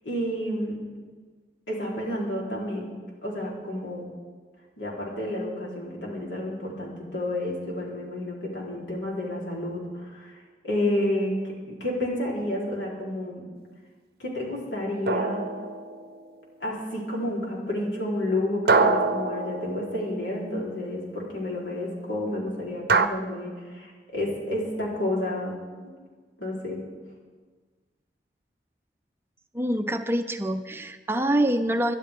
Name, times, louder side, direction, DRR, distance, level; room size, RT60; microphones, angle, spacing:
voice 1, 0.0-0.8 1.7-2.9 3.2-4.1 4.8-10.4 10.6-13.5 14.2-15.5 16.6-25.6 26.4-26.8, left 1 dB, 85° left, -4 dB, 4.1 m, -30 dB
sound 1, 15.1-16.3 18.7-20.3 22.9-23.1, right 4 dB, 55° right, 0.6 m, -24 dB
voice 2, 29.5-31.9, right 1 dB, 15° right, 7 dB, 0.5 m, -25 dB
23.0 x 11.5 x 3.7 m, 1.5 s
head